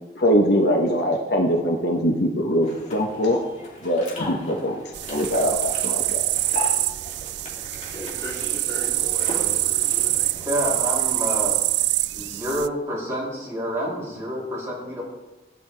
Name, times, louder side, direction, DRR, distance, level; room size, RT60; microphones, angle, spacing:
voice 1, 0.2-3.4 3.8-4.8 5.1-6.2, equal, 65° left, 2 dB, 1.1 m, -22 dB
sound 1, 2.6-11.5, left 2 dB, 40° left, 2.7 m, -38 dB
sound 2, 4.9-12.7, right 17 dB, 70° right, 0.3 m, -25 dB
voice 2, 7.7-10.2, equal, 15° left, -6 dB, 3.5 m, -37 dB
voice 3, 10.5-11.6 12.1-15.0, equal, 15° right, -6 dB, 3.5 m, -28 dB
14.5 x 10.0 x 3.4 m, 1.1 s
head